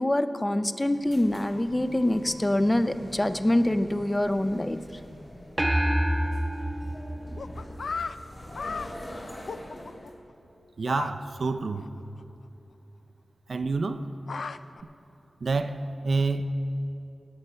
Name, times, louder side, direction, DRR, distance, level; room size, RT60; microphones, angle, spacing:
voice 1, 0.0-4.8, left 1 dB, 20° left, 11 dB, 0.5 m, -25 dB
sound 1, 0.8-10.1, left 1 dB, 50° left, 3.1 m, -44 dB
sound 2, 5.6-8.2, equal, 15° right, 0.8 m, -27 dB
sound 3, 7.4-8.1 8.5-8.9 9.5-10.1 10.9-11.1 11.4-11.5 11.8-11.9 12.2-12.3 14.0-14.8, left 4 dB, 75° left, 0.3 m, -34 dB
voice 2, 10.8-11.9 13.5-14.1 15.4-16.5, right 3 dB, 70° right, 9 dB, 0.5 m, -28 dB
18.0 x 6.8 x 5.6 m, 3.0 s
wide cardioid pair, 65°, 0 cm